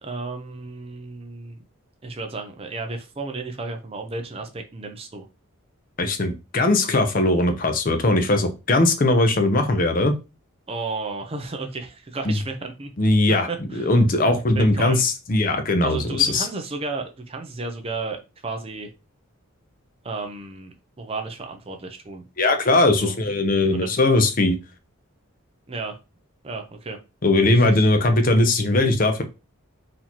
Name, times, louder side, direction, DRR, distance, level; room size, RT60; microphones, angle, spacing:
voice 1, 0.0-1.6 2.0-5.3 10.7-12.9 13.3-13.9 14.5-15.0 15.8-18.9 20.0-22.2 22.9-23.1 23.7-24.0 25.7-26.0 26.4-27.0 27.4-28.0, right 3 dB, 25° right, 5 dB, 0.5 m, -33 dB
voice 2, 6.0-10.1 12.3-12.4 13.0-13.5 13.8-16.5 22.4-24.6 27.2-29.2, left 2 dB, 40° left, 7 dB, 0.6 m, -19 dB
4.1 x 2.7 x 2.9 m, 0.28 s
head